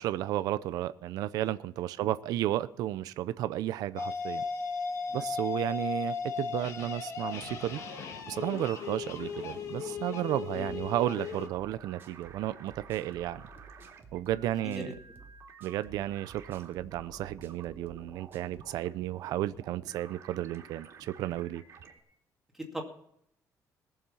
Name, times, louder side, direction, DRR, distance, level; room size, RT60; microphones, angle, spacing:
voice 1, 0.0-4.4 5.1-7.8 8.3-13.4 14.1-14.9 15.6-21.6, right 13 dB, 75° right, 0.6 m, -33 dB
sound 1, 4.0-11.5, left 5 dB, 55° left, 1.5 m, -36 dB
voice 2, 5.1-5.5 10.5-10.8 14.6-15.3 22.5-22.8, equal, 5° right, 2.3 m, -41 dB
sound 2, 7.2-22.0, right 6 dB, 50° right, 2.4 m, -52 dB
sound 3, 12.0-18.8, right 3 dB, 35° right, 1.3 m, -54 dB
20.5 x 7.2 x 5.6 m
cardioid pair, 170°, 6 cm